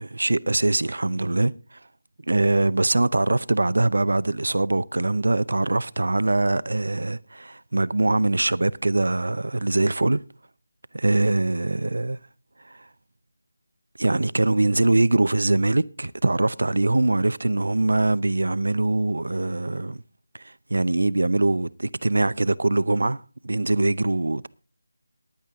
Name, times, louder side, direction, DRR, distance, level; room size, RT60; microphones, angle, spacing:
voice 1, 0.0-1.8 2.3-10.2 10.9-12.2 12.6-12.8 14.0-20.0 20.3-24.5, right 2 dB, 70° right, 0.7 m, -23 dB
15.5 x 10.5 x 3.7 m
figure-of-eight pair, 165°, 0 cm